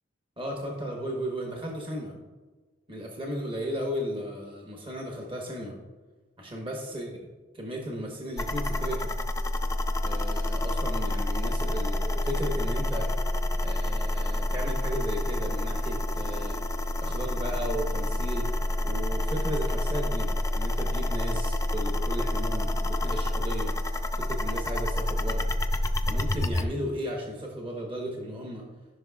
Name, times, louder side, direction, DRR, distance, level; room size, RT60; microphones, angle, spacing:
voice 1, 0.4-2.1 2.9-5.7 6.4-7.1 7.5-9.1 10.0-13.1 13.6-16.6 17.0-18.5 18.8-28.6, equal, 30° right, -1 dB, 1.1 m, -35 dB
sound 1, 8.4-26.7, left 1 dB, 15° left, 0.4 m, -28 dB
14.0 x 5.9 x 2.4 m, 1.3 s
head